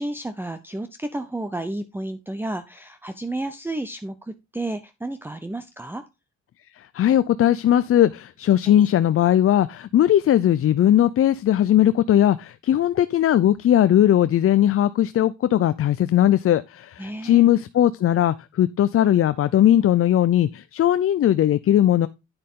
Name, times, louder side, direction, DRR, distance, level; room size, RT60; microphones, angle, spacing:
voice 1, 0.0-6.0 8.7-8.8 17.0-17.4, right 1 dB, 5° right, 0.7 m, -31 dB
voice 2, 6.8-22.1, left 11 dB, 50° left, 0.5 m, -19 dB
9.7 x 6.6 x 3.7 m
cardioid pair, 90°, 30 cm